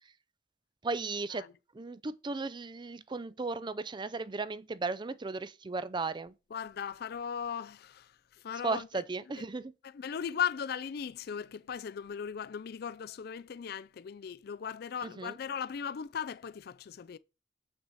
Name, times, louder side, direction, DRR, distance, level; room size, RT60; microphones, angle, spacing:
voice 1, 0.8-1.5 1.7-6.3 8.6-9.7 15.0-15.4, right 3 dB, 25° right, 0.5 m, -36 dB
voice 2, 6.5-8.9 9.8-17.2, left 7 dB, 60° left, 0.4 m, -38 dB
7.7 x 6.1 x 4.1 m
head